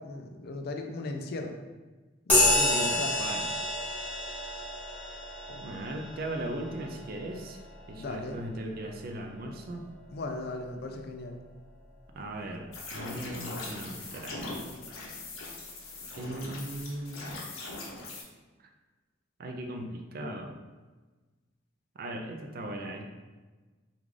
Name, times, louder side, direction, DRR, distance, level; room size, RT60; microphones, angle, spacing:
voice 1, 0.0-1.6 2.3-3.1 5.5-5.7 8.0-8.4 10.1-11.4, left 2 dB, 50° left, 4 dB, 0.4 m, -37 dB
sound 1, 2.3-10.2, left 1 dB, 10° left, 0.8 m, -30 dB
voice 2, 2.7-3.4 5.6-7.6 7.9-9.8 12.1-14.6 16.2-17.3 19.4-20.6 22.0-23.0, right 1 dB, 50° right, 4 dB, 0.4 m, -38 dB
sound 2, 12.7-18.2, left 2 dB, 80° left, 0.7 m, -40 dB
3.6 x 2.4 x 3.1 m, 1.3 s
head